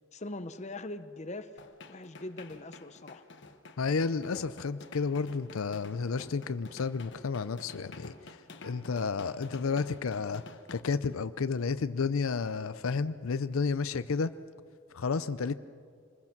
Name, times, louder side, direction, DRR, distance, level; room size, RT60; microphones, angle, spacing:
voice 1, 0.1-1.5 1.9-3.2, left 2 dB, 35° left, 10 dB, 0.8 m, -41 dB
sound 1, 1.6-10.8, left 3 dB, 55° left, 1.2 m, -50 dB
voice 2, 3.8-8.4 8.6-10.4 10.7-14.3 14.9-15.5, left 5 dB, 80° left, 13 dB, 0.5 m, -31 dB
27.5 x 20.5 x 6.0 m, 2.2 s
head